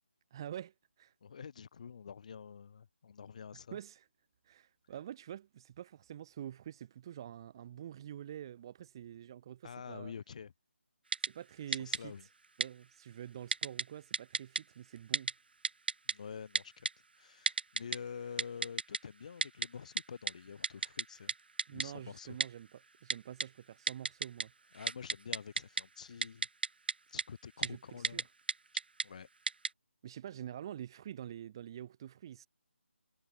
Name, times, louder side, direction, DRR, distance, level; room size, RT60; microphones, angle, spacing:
voice 1, 0.3-1.1 3.7-4.1 4.4-10.1 11.2-12.3 12.6-15.3 21.7-24.5 27.6-28.3 30.0-32.5, right 10 dB, 20° right, 0.8 m, -47 dB
voice 2, 1.2-3.8 9.6-10.5 11.7-12.2 16.1-16.9 17.2-21.3 21.7-22.4 24.7-26.5 27.1-28.2 29.0-29.3, left 6 dB, 35° left, 4.9 m, -47 dB
Typing, 11.1-11.3 11.7-12.0 12.6-12.7 13.5-13.8 14.1-14.6 15.1-15.3 15.6-16.1 16.5-16.9 17.5-18.0 18.4-19.0 19.4-19.7 20.0-20.1 20.3-20.4 20.6-21.0 21.3-21.4 21.6-21.9 22.4-22.5 23.1-23.5 23.9-24.4 24.7-25.8 26.2-26.9 27.2-27.3 27.6-27.7 28.0-28.2 28.5-29.0 29.5-29.7, right 4 dB, 50° right, 0.7 m, -32 dB
figure-of-eight pair, 155°, 7 cm